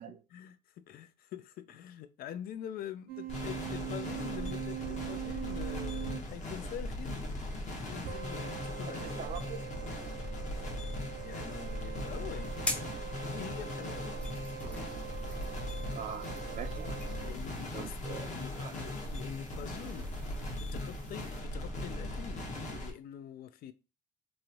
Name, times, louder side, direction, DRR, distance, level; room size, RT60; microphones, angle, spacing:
voice 1, 0.3-7.3 7.7-9.1 10.7-10.8 11.1-14.2 17.2-20.1 20.5-23.7, left 10 dB, 60° left, 0.4 m, -45 dB
sound 1, 3.1-6.3 8.1-17.3, right 13 dB, 85° right, 0.9 m, -43 dB
sound 2, 3.3-22.9, left 1 dB, 45° left, 1.1 m, -39 dB
voice 2, 8.9-9.7 15.9-17.0 17.7-18.3 18.5-18.8, right 8 dB, 50° right, 0.4 m, -43 dB
sound 3, 12.4-21.4, left 1 dB, 5° left, 0.5 m, -45 dB
3.1 x 2.5 x 2.9 m
cardioid pair, 110°, 17 cm